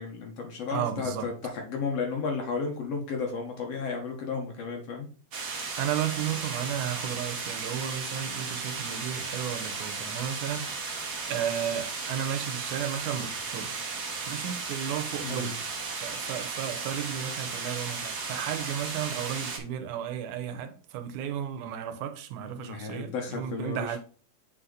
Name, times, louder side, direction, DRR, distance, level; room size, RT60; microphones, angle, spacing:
voice 1, 0.0-5.1 15.2-15.5 20.5-20.6 22.6-24.0, left 5 dB, 60° left, 2.2 m, -33 dB
voice 2, 0.7-1.3 5.8-10.8 11.3-13.7 14.3-15.5 16.0-24.0, right 9 dB, 85° right, 2.2 m, -33 dB
sound 1, 5.3-19.6, right 4 dB, 60° right, 1.0 m, -35 dB
7.6 x 4.2 x 3.9 m
omnidirectional pair, 3.5 m